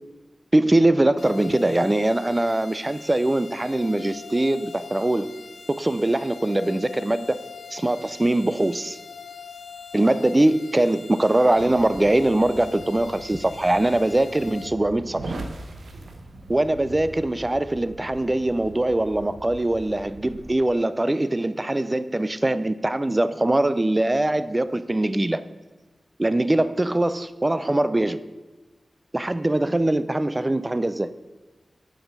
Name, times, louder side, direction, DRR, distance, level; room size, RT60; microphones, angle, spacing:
voice 1, 0.5-5.4 5.7-7.4 7.7-9.0 9.9-15.4 16.5-25.4 26.2-28.2 29.1-31.1, right 1 dB, 20° right, 14 dB, 0.4 m, -22 dB
sound 1, 1.2-14.7, left 6 dB, 65° left, 0.4 m, -42 dB
sound 2, 11.6-20.6, right 2 dB, 85° right, 0.9 m, -41 dB
7.2 x 6.1 x 5.3 m, 1.2 s
wide cardioid pair, 100°, 0 cm